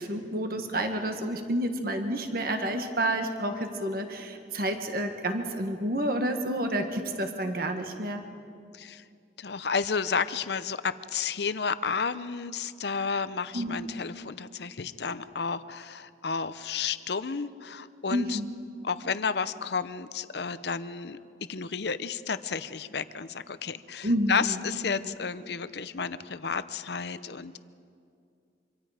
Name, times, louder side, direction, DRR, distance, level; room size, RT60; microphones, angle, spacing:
voice 1, 0.0-8.2 13.5-13.8 18.1-18.5 24.0-24.6, right 1 dB, 55° right, 5 dB, 1.6 m, -29 dB
voice 2, 8.7-9.0 9.4-18.4 18.8-27.6, left 5 dB, 65° left, 14 dB, 0.7 m, -32 dB
25.5 x 25.5 x 5.0 m, 2.4 s
head